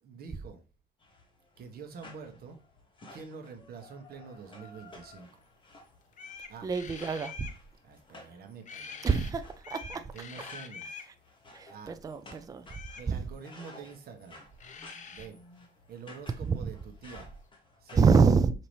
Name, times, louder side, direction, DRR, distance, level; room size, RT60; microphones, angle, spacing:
voice 1, 0.0-0.6 1.6-2.6 3.1-5.3 6.5-6.7 7.8-9.2 9.9-11.1 11.6-11.9 13.0-14.5 15.1-15.4 15.9-17.3 17.8-18.1, right 6 dB, 55° right, 1.1 m, -46 dB
sound 1, 1.0-18.1, left 2 dB, 25° left, 1.2 m, -54 dB
sound 2, 5.7-5.8 6.1-7.6 8.6-9.3 9.6-11.1 12.7-13.1 14.3-14.4 14.6-15.3, left 6 dB, 40° left, 0.7 m, -45 dB
voice 2, 6.6-7.5 9.0-10.1 11.5-12.8 13.1-13.2 16.4-16.7 18.0-18.5, right 5 dB, 20° right, 0.4 m, -26 dB
5.2 x 2.9 x 3.1 m
cardioid pair, 115°, 19 cm